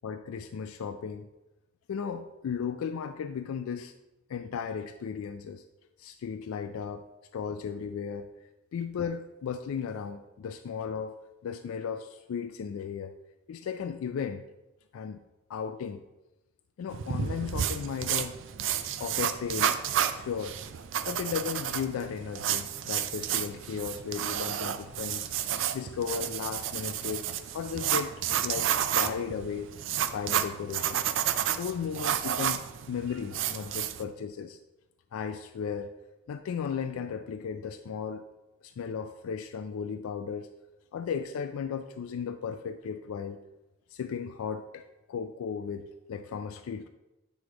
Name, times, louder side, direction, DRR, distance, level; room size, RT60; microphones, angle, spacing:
voice 1, 0.0-1.3 1.9-3.9 4.3-5.6 6.0-7.0 7.3-8.3 8.7-11.2 11.4-13.1 13.5-14.4 14.9-15.2 15.5-16.0 16.8-18.4 19.0-19.8 20.1-20.6 21.1-25.3 25.7-27.3 27.5-28.1 28.4-29.7 30.1-31.0 31.6-34.6 35.1-35.9 36.3-38.2 38.6-40.5 40.9-43.4 43.9-44.8 45.1-46.9, left 6 dB, 80° left, 8 dB, 0.3 m, -35 dB
sound 1, 16.9-34.0, right 9 dB, 60° right, 0.4 m, -31 dB
8.2 x 3.1 x 4.8 m, 0.99 s
head